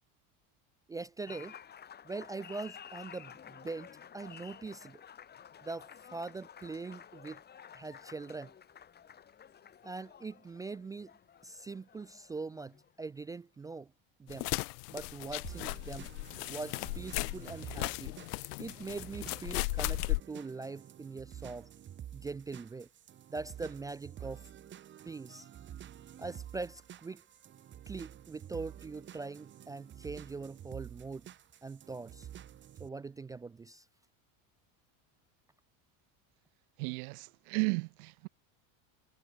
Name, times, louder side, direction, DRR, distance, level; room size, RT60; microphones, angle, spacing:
voice 1, 0.9-1.6 2.0-5.0 5.6-7.4 7.7-8.5 9.8-11.1 11.4-13.9 14.2-14.5 14.9-16.1 16.5-18.2 18.6-21.7 22.1-22.9 23.3-24.5 25.0-25.5 26.2-27.2 27.9-31.3 31.6-32.3 32.8-33.9, right 3 dB, 10° right, 0.4 m, -42 dB
Applause, 1.3-13.0, left 8 dB, 20° left, 4.9 m, -53 dB
sound 1, 14.3-20.2, left 27 dB, 80° left, 1.9 m, -36 dB
sound 2, 15.4-32.9, right 10 dB, 25° right, 2.2 m, -49 dB
voice 2, 36.8-38.3, right 31 dB, 70° right, 1.0 m, -34 dB
cardioid pair, 180°, 45 cm